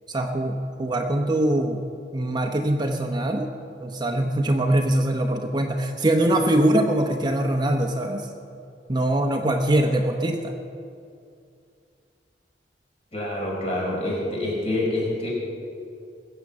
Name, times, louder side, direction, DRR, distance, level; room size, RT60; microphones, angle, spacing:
voice 1, 0.1-1.8 2.1-3.5 3.8-8.3 8.9-10.5, right 1 dB, 25° right, 3 dB, 0.9 m, -23 dB
voice 2, 13.1-15.3, left 1 dB, 35° left, -3 dB, 5.0 m, -26 dB
21.0 x 8.2 x 7.2 m, 2.4 s
head